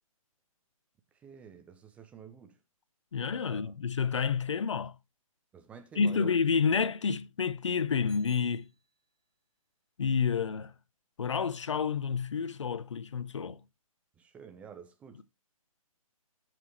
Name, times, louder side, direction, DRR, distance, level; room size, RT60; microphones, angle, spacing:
voice 1, 1.2-2.6 3.5-3.8 5.5-6.3 14.2-15.2, right 7 dB, 5° right, 0.5 m, -49 dB
voice 2, 3.1-4.9 5.9-8.6 10.0-10.7 11.2-13.6, left 6 dB, 55° left, 0.9 m, -29 dB
Bicycle bell, 8.1-9.3, right 3 dB, 40° right, 3.7 m, -62 dB
14.5 x 6.0 x 3.1 m
figure-of-eight pair, 135°, 18 cm